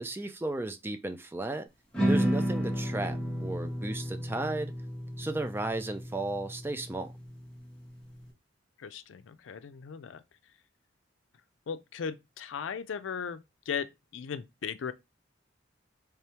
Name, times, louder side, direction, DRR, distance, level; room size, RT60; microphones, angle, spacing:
voice 1, 0.0-1.7 2.1-4.7 5.2-7.1, right 2 dB, 10° right, 0.4 m, -34 dB
sound 1, 1.9-8.2, equal, 5° left, 1.1 m, -32 dB
voice 2, 8.8-10.2 11.7-13.4 13.7-14.9, left 7 dB, 85° left, 0.4 m, -37 dB
3.5 x 3.4 x 2.9 m
head